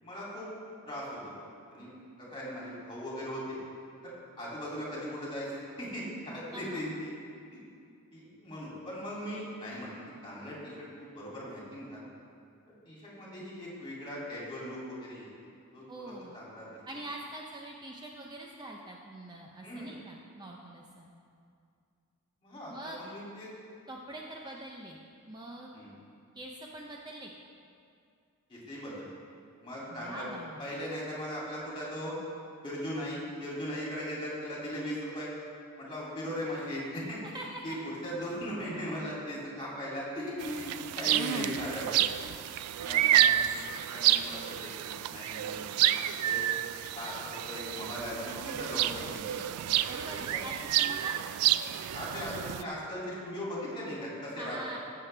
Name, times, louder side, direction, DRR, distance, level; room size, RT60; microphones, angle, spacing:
voice 1, 0.0-0.5 0.8-1.2 1.7-1.9 2.2-3.6 4.0-6.0 6.3-7.1 8.1-9.9 10.2-12.0 12.9-15.3 15.7-16.8 19.6-19.9 22.4-23.5 25.7-25.9 28.5-29.1 29.6-30.2 30.6-32.1 32.6-35.3 35.8-37.2 37.6-37.7 38.0-42.0 42.7-43.6 43.9-45.6 46.2-46.4 46.9-49.4 50.1-50.4 51.9-54.6, equal, 25° left, -6 dB, 2.7 m, -38 dB
voice 2, 6.5-6.8 15.9-16.4 16.9-21.1 22.7-23.1 23.9-25.0 25.3-25.7 26.3-27.3 29.9-30.7 37.2-37.8 49.9-51.2 54.3-54.8, right 1 dB, 20° right, -1 dB, 0.6 m, -44 dB
sound 1, 40.4-52.6, right 12 dB, 80° right, 0.3 m, -29 dB
15.5 x 6.7 x 3.3 m, 2.4 s
head